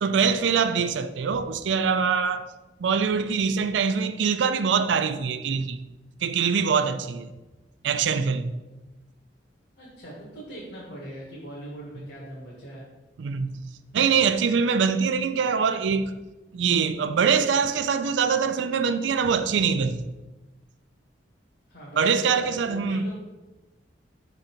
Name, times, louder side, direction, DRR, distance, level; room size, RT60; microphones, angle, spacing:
voice 1, 0.0-2.5 2.8-5.8 6.2-7.3 7.8-8.5 13.2-13.6 13.9-16.1 16.5-20.0 22.0-23.0, right 6 dB, 75° right, 0.4 m, -23 dB
voice 2, 9.8-12.8 21.7-23.2, right 1 dB, 60° left, 1.5 m, -41 dB
5.8 x 3.9 x 4.4 m
head